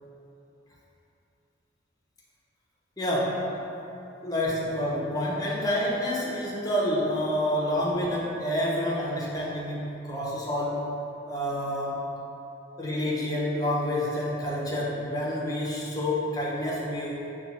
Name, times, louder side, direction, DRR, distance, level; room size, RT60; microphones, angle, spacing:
voice 1, 3.0-3.5 4.2-10.9 11.3-12.2 12.8-17.3, left 1 dB, 20° left, -5 dB, 0.5 m, -28 dB
5.5 x 2.2 x 2.8 m, 2.9 s
head